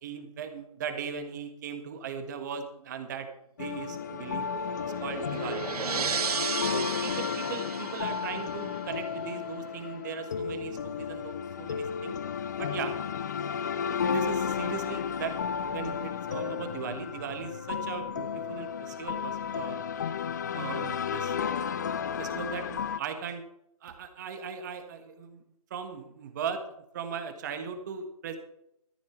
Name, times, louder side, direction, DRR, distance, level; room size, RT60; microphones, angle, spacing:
voice 1, 0.0-3.3 3.6-4.5 4.8-5.7 6.7-12.2 12.6-13.0 13.7-19.8 20.5-21.4 22.2-23.4 23.8-25.4 25.7-26.7 26.9-28.4, right 6 dB, 30° right, 7 dB, 1.7 m, -38 dB
sound 1, 3.6-23.0, left 7 dB, 30° left, 0.4 m, -33 dB
sound 2, 3.9-9.0, right 7 dB, 90° right, 0.4 m, -35 dB
14.0 x 11.0 x 4.6 m, 0.78 s
hypercardioid pair, 160°, 19 cm